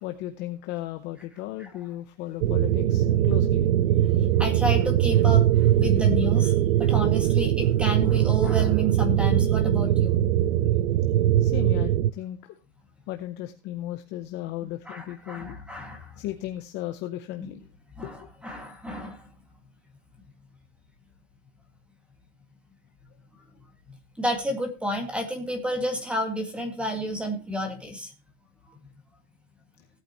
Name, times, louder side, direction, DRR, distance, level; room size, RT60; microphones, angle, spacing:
voice 1, 0.0-3.7 11.4-12.5 13.1-15.6 16.2-17.6 18.0-18.3, left 14 dB, 30° left, 7 dB, 0.7 m, -35 dB
sound 1, 2.4-12.1, right 12 dB, 80° right, 0.8 m, -21 dB
voice 2, 4.4-10.1 14.9-16.1 18.0-19.3 24.2-28.1, equal, 5° right, 5 dB, 2.0 m, -31 dB
17.0 x 8.9 x 3.0 m, 0.32 s
supercardioid pair, 175°, 38 cm